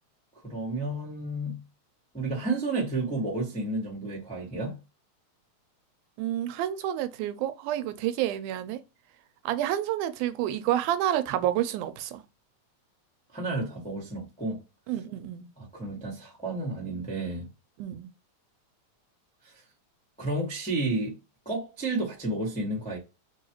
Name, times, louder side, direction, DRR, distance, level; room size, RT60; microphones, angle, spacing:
voice 1, 0.4-1.6 2.1-4.8 13.3-14.6 15.6-17.5 19.4-19.6 20.2-21.2 21.4-23.0, right 2 dB, 10° left, 0.3 m, -31 dB
voice 2, 6.2-8.8 9.5-12.2 14.9-15.5 17.8-18.1, right 12 dB, 90° right, 2.0 m, -29 dB
4.6 x 2.3 x 2.9 m
omnidirectional pair, 3.5 m